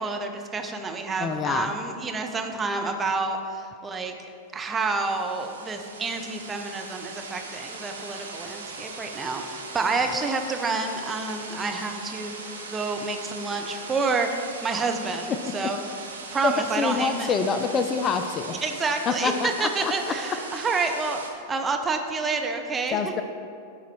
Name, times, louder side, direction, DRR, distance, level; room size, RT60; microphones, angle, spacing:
voice 1, 0.0-4.1 4.5-15.8 16.3-17.3 18.6-21.2 21.5-23.0, right 3 dB, 20° right, 4 dB, 0.8 m, -29 dB
voice 2, 1.2-1.7 16.4-18.6 19.1-20.1 22.9-23.2, left 5 dB, 30° left, 8 dB, 0.4 m, -26 dB
sound 1, 4.7-21.3, right 4 dB, 80° right, 0.9 m, -39 dB
11.5 x 4.2 x 4.5 m, 2.4 s
hypercardioid pair, 95°, 0 cm